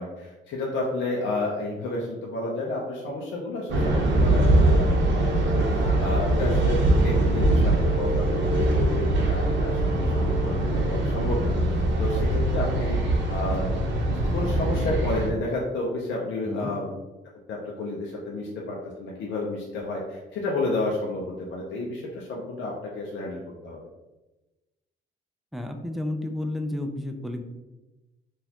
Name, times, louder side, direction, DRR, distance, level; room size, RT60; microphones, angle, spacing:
voice 1, 0.0-4.9 5.1-13.0 13.3-13.7 14.1-16.9 17.5-23.8, left 2 dB, 65° left, -3 dB, 0.6 m, -31 dB
sound 1, 3.7-15.3, right 1 dB, 70° right, 0.7 m, -22 dB
voice 2, 25.5-27.4, left 1 dB, ahead, 4 dB, 0.4 m, -31 dB
4.0 x 2.5 x 2.8 m, 1.1 s
cardioid pair, 90°, 20 cm